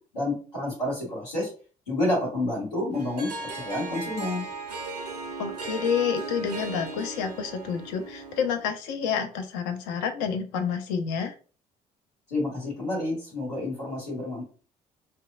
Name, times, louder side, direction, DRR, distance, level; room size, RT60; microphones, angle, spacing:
voice 1, 0.1-1.5 1.9-4.5 12.3-14.4, left 1 dB, 85° left, -6 dB, 1.2 m, -29 dB
Harp, 2.9-8.7, right 3 dB, 90° right, 0.4 m, -37 dB
voice 2, 5.4-11.3, left 7 dB, 65° left, 7 dB, 0.5 m, -29 dB
2.8 x 2.2 x 2.4 m, 0.38 s
figure-of-eight pair, 45°, 20 cm